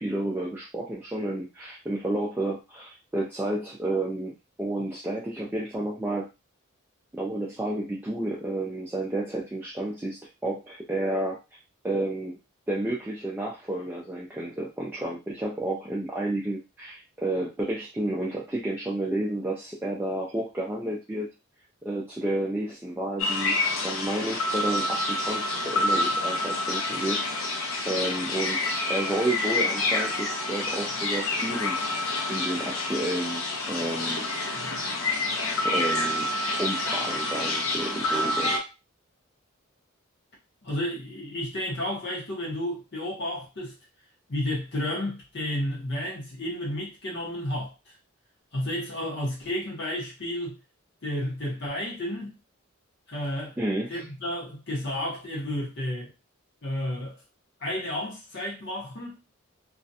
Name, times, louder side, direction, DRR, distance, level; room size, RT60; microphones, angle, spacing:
voice 1, 0.0-6.3 7.2-11.4 11.8-12.3 12.7-21.3 21.8-27.6 27.9-31.8 32.3-33.4 33.7-34.3 35.6-36.3 36.6-38.6 53.6-54.0, right 1 dB, 10° right, 0.3 m, -31 dB
sound 1, 23.2-38.6, left 2 dB, 85° left, 0.7 m, -28 dB
voice 2, 40.6-43.7 44.3-47.9 48.5-50.6 51.0-52.3 53.1-53.6 53.9-56.1 56.6-57.2 57.6-59.2, left 1 dB, 55° left, 0.8 m, -32 dB
2.4 x 2.1 x 2.7 m
head